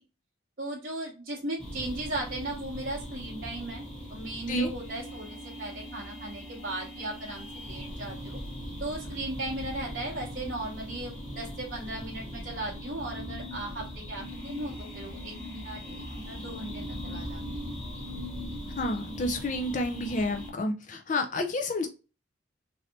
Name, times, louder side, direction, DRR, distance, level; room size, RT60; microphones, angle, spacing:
voice 1, 0.6-3.8 4.1-8.4 8.8-17.4, right 2 dB, 45° right, -5 dB, 0.8 m, -37 dB
sound 1, 1.6-20.5, equal, 5° left, 0.9 m, -40 dB
voice 2, 18.8-21.9, left 1 dB, 40° left, 4 dB, 0.4 m, -29 dB
3.2 x 2.6 x 2.8 m, 0.32 s
head